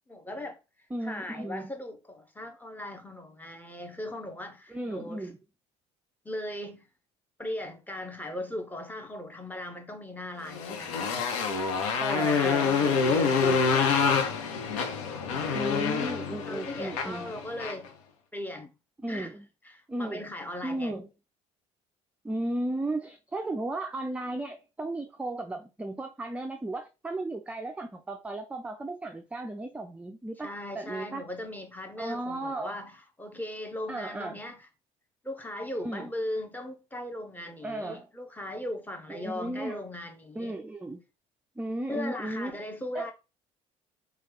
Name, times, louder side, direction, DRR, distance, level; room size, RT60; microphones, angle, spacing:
voice 1, 0.1-0.6 1.0-5.3 6.2-6.9 7.4-11.2 11.9-14.4 16.5-17.9 18.3-18.7 19.1-19.3 19.6-21.0 30.4-34.7 35.2-40.5 41.9-43.1, left 1 dB, 10° left, 0.8 m, -38 dB
voice 2, 0.9-1.7 4.7-5.4 12.0-13.1 15.5-17.3 19.0-19.4 19.9-20.2 20.6-21.1 22.2-31.3 32.0-32.8 33.9-34.4 35.8-36.1 37.6-38.1 39.1-39.8 40.3-41.0 41.6-42.6 42.9-43.1, right 2 dB, 10° right, 0.4 m, -35 dB
Motorcycle, 10.5-17.9, left 5 dB, 80° left, 0.6 m, -27 dB
3.2 x 2.3 x 3.0 m
hypercardioid pair, 65°, 17 cm